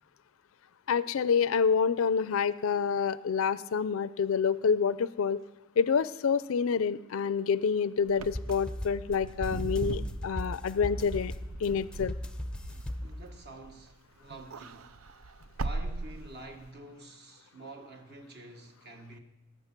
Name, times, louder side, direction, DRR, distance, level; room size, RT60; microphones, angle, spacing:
voice 1, 0.9-5.4 5.8-11.3 11.6-12.1, left 6 dB, 70° left, 0.4 m, -27 dB
Wind / Car, 8.1-13.9 14.2-16.7, right 3 dB, 80° right, 0.6 m, -39 dB
sound 1, 8.2-13.5, left 1 dB, 5° left, 0.5 m, -38 dB
voice 2, 13.0-14.9 15.6-19.2, right 2 dB, 50° right, 1.4 m, -48 dB
18.5 x 7.6 x 5.9 m
head